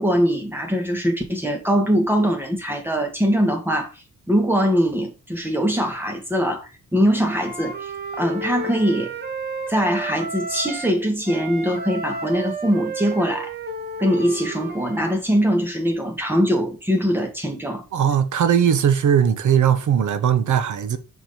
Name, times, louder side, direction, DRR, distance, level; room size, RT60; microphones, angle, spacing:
voice 1, 0.0-3.9 4.3-9.1 9.7-13.5 14.0-17.8, equal, 5° right, 1.7 m, -22 dB
Wind instrument woodwind instrument, 7.2-11.0 11.3-15.1, right 3 dB, 30° right, 1.4 m, -32 dB
voice 2, 17.9-21.0, right 8 dB, 70° right, 1.0 m, -19 dB
6.1 x 4.6 x 5.2 m
wide cardioid pair, 155°, 31 cm